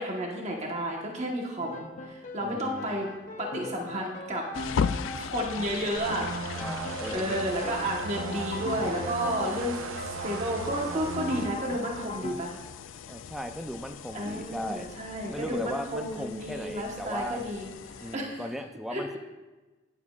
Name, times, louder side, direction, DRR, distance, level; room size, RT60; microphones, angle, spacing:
voice 1, 0.0-3.1 3.4-4.5 5.2-6.3 7.1-9.8 10.0-12.6 14.1-17.7 18.0-18.4 18.9-19.0, equal, 35° right, -1 dB, 1.2 m, -32 dB
Piano, 1.6-9.7 10.0-12.3, left 2 dB, 40° left, 0.7 m, -40 dB
voice 2, 2.4-3.1 6.6-7.5 13.1-14.9 15.3-17.4 18.0-19.2, equal, ahead, 5 dB, 0.4 m, -37 dB
sound 1, 4.5-18.2, left 6 dB, 70° left, 0.3 m, -39 dB
sound 2, 6.0-11.5, right 4 dB, 85° right, 0.6 m, -37 dB
18.0 x 7.3 x 2.4 m, 1.2 s
head